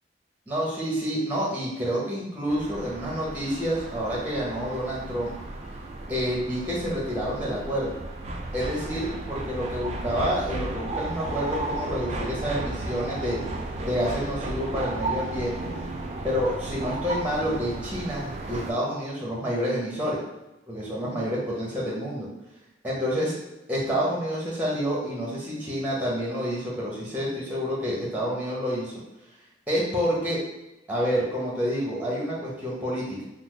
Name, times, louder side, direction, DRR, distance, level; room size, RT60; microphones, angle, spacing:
voice 1, 0.5-5.3 6.1-7.9 8.5-13.4 13.8-15.7 16.2-20.2 20.7-22.3 22.8-23.3 23.7-28.9 29.7-30.4 30.9-33.2, equal, 10° right, -5 dB, 0.8 m, -28 dB
sound 1, 2.5-18.7, right 2 dB, 35° right, 0.3 m, -34 dB
3.9 x 2.0 x 3.1 m, 0.96 s
head